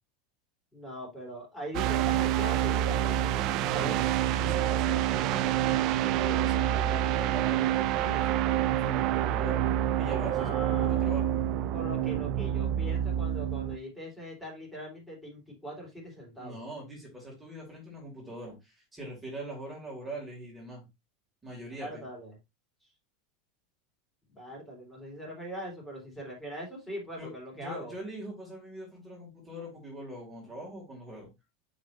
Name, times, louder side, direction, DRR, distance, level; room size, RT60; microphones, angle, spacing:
voice 1, 0.7-4.1 10.1-11.1 11.7-16.6 21.8-22.3 24.3-27.9, right 1 dB, 10° left, -2 dB, 3.0 m, -41 dB
sound 1, 1.7-13.8, right 11 dB, 45° right, 0.4 m, -27 dB
voice 2, 3.7-4.0 4.4-9.6 10.0-10.5 10.8-11.4 16.4-20.8 21.4-22.0 27.2-31.3, equal, 10° right, -4 dB, 2.6 m, -42 dB
7.2 x 5.2 x 2.6 m, 0.22 s
supercardioid pair, 150°, 0 cm